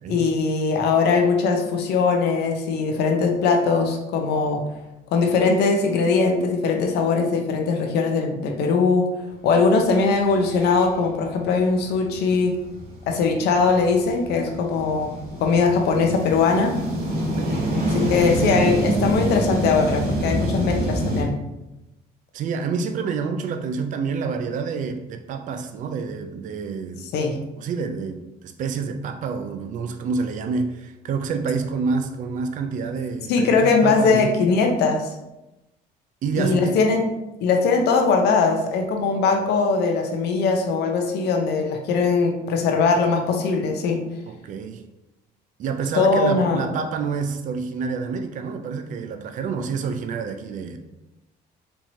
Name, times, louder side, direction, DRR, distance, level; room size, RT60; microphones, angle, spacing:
voice 1, 0.1-4.6 5.1-9.1 9.4-12.6 13.1-15.1 15.4-16.8 17.9-21.4 27.1-27.4 33.3-35.1 36.4-37.1 37.4-44.0 45.9-46.6, left 4 dB, 75° left, 3 dB, 0.7 m, -20 dB
sound 1, 9.7-9.8 10.2-21.2, right 1 dB, 65° right, 1.1 m, -27 dB
voice 2, 17.4-17.7 22.3-27.0 27.6-34.4 36.2-36.8 44.3-44.8 45.6-50.8, right 5 dB, 50° right, 7 dB, 0.4 m, -28 dB
4.4 x 2.9 x 2.7 m, 0.95 s
cardioid pair, 110°, 17 cm